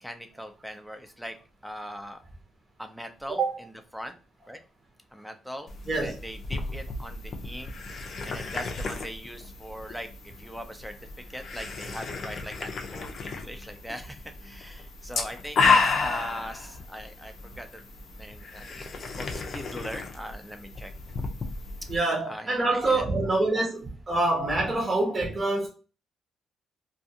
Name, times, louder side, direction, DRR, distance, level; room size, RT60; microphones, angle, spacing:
voice 1, 0.0-1.4 1.6-2.2 2.8-4.1 4.5-4.6 5.1-7.7 8.2-11.0 11.3-17.7 18.2-20.9 22.3-23.1, equal, ahead, 0.5 m, -40 dB
sound 1, 5.7-22.0, left 4 dB, 50° left, 0.5 m, -32 dB
voice 2, 21.9-25.7, right 2 dB, 30° right, 0.9 m, -26 dB
2.4 x 2.4 x 2.7 m
cardioid pair, 90°, 0 cm